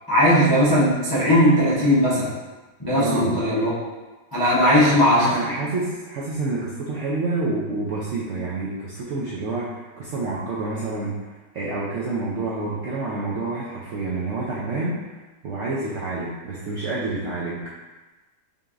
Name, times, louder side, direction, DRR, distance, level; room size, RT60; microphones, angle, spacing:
voice 1, 0.1-2.3 2.8-3.7 4.3-5.4, equal, 35° left, -10 dB, 0.3 m, -18 dB
voice 2, 2.9-3.4 4.6-15.1 15.4-17.7, right 3 dB, 85° right, -6 dB, 0.6 m, -28 dB
5.2 x 2.8 x 2.4 m, 1.2 s
omnidirectional pair, 1.9 m